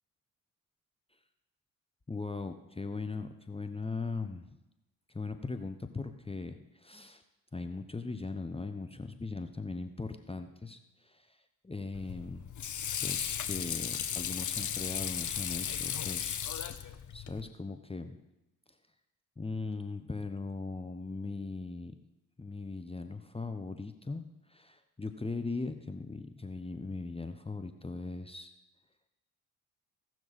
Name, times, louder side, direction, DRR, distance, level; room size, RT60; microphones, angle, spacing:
voice 1, 2.1-4.4 5.1-7.2 7.5-11.4 11.6-12.4 13.0-16.4 17.1-18.2 19.4-21.9 22.4-24.2 24.5-28.5, left 3 dB, 15° left, 7 dB, 0.9 m, -39 dB
Water / Sink (filling or washing), 11.9-17.4, left 9 dB, 45° left, 1.0 m, -35 dB
17.0 x 6.2 x 4.1 m, 0.96 s
hypercardioid pair, 45°, 42 cm